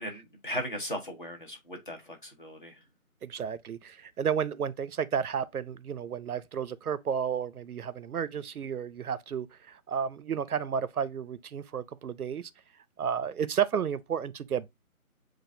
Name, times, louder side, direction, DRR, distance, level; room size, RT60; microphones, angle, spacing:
voice 1, 0.0-2.8, equal, 35° left, 1.0 m, -37 dB
voice 2, 3.2-12.5 13.0-14.7, right 7 dB, 80° right, 0.6 m, -32 dB
7.6 x 2.5 x 2.6 m
figure-of-eight pair, 170°, 44 cm